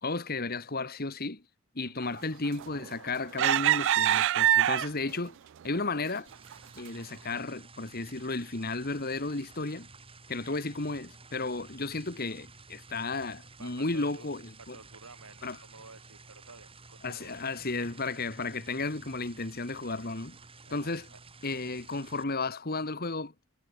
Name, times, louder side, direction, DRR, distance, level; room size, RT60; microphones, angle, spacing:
voice 1, 0.0-1.4 1.7-5.4 5.6-6.3 6.8-9.9 10.3-14.8 15.4-15.6 17.0-20.4 20.7-21.0 21.4-23.3, left 3 dB, 45° left, 1.8 m, -33 dB
voice 2, 1.8-2.2 10.3-10.6 13.6-17.4 17.8-18.0 20.7-21.2, right 3 dB, 75° right, 5.3 m, -53 dB
sound 1, 2.6-2.9 3.4-5.2 5.8-5.9 6.3-6.5, right 12 dB, 55° right, 0.3 m, -24 dB
sound 2, 6.3-22.2, right 3 dB, 25° right, 7.4 m, -52 dB
head